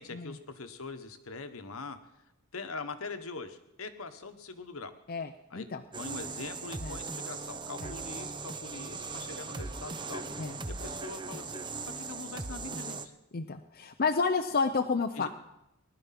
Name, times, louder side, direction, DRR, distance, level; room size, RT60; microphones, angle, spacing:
voice 1, 0.0-2.0 2.5-4.9 5.5-5.7 5.9-11.7 11.9-13.1 15.1-15.3, left 3 dB, 70° left, 8 dB, 1.3 m, -43 dB
voice 2, 5.1-5.8 6.8-7.0 7.8-7.9 10.4-10.6 13.3-15.3, left 4 dB, 45° left, 5 dB, 0.6 m, -30 dB
sound 1, 5.9-13.1, right 4 dB, 20° right, 0.7 m, -39 dB
20.0 x 11.5 x 5.9 m, 0.89 s
head